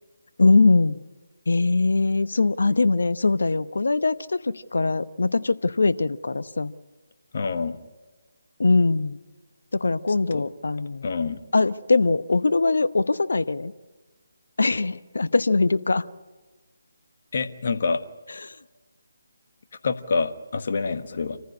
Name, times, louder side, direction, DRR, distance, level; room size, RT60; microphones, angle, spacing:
voice 1, 0.4-1.0 1.5-6.7 8.6-9.2 9.7-11.1 11.5-13.7 14.6-16.1 18.4-18.6, left 3 dB, 70° left, 14 dB, 0.9 m, -22 dB
voice 2, 7.3-7.8 10.3-10.5 11.0-11.4 17.3-18.0 19.8-21.4, left 4 dB, 50° left, 9 dB, 1.5 m, -26 dB
27.5 x 15.0 x 9.8 m, 1.3 s
figure-of-eight pair, 150°, 0 cm